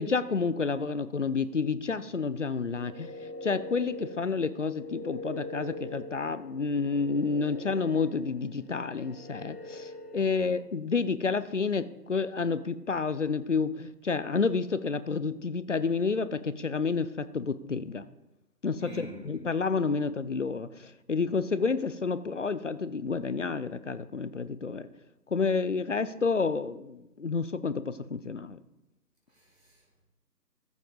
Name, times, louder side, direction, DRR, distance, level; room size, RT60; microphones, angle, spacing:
voice 1, 0.0-18.1 18.6-24.9 25.3-28.6, left 4 dB, 50° left, 14 dB, 0.5 m, -30 dB
sound 1, 2.6-10.5, left 2 dB, 70° left, 2.2 m, -43 dB
voice 2, 18.8-19.4 29.3-30.0, right 1 dB, 5° right, -14 dB, 1.0 m, -47 dB
14.0 x 7.3 x 4.0 m, 0.91 s
figure-of-eight pair, 145°, 49 cm